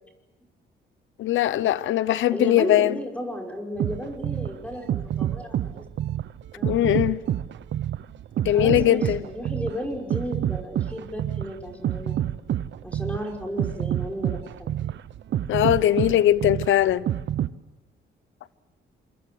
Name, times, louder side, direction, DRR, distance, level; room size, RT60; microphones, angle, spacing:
voice 1, 1.2-2.9 6.6-7.2 8.4-9.2 15.5-17.0, left 12 dB, 75° left, 0.9 m, -20 dB
voice 2, 2.3-5.9 6.5-6.9 8.5-12.2 12.8-14.7, equal, 5° left, 5.9 m, -34 dB
sound 1, 3.8-17.5, right 11 dB, 65° right, 0.9 m, -28 dB
27.0 x 24.5 x 8.0 m
cardioid pair, 90°, 20 cm